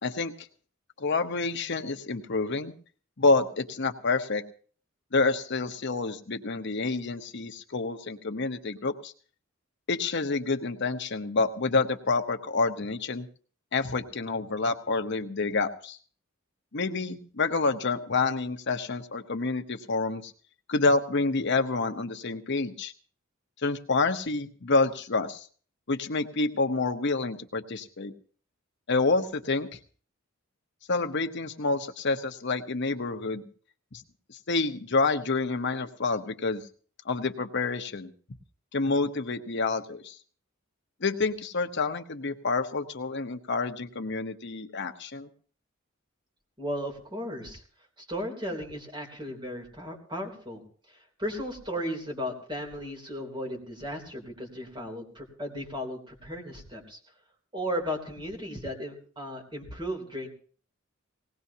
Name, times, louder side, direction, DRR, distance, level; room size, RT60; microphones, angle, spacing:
voice 1, 0.0-0.3 1.0-2.7 3.2-4.4 5.1-9.1 9.9-13.3 13.7-16.0 16.7-20.3 20.7-22.9 23.6-25.5 25.9-28.1 28.9-29.8 30.9-33.4 33.9-34.0 34.3-36.6 37.0-38.1 38.7-40.2 41.0-45.3, left 3 dB, 60° left, 6 dB, 1.0 m, -28 dB
voice 2, 46.6-47.6 48.1-50.6 51.2-57.0 57.5-60.3, equal, 25° right, 1 dB, 3.2 m, -35 dB
19.5 x 18.0 x 2.8 m, 0.43 s
head